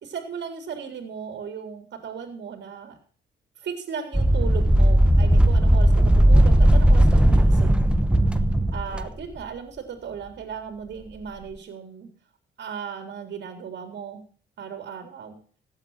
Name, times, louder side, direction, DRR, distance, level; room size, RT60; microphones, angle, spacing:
voice 1, 0.0-3.0 3.6-7.9 8.7-12.1 12.6-14.2 14.6-15.4, right 7 dB, 60° right, 6 dB, 3.9 m, -36 dB
sound 1, 4.1-9.1, right 1 dB, 5° right, 1.1 m, -17 dB
16.5 x 8.9 x 5.8 m, 0.43 s
cardioid pair, 90°, 20 cm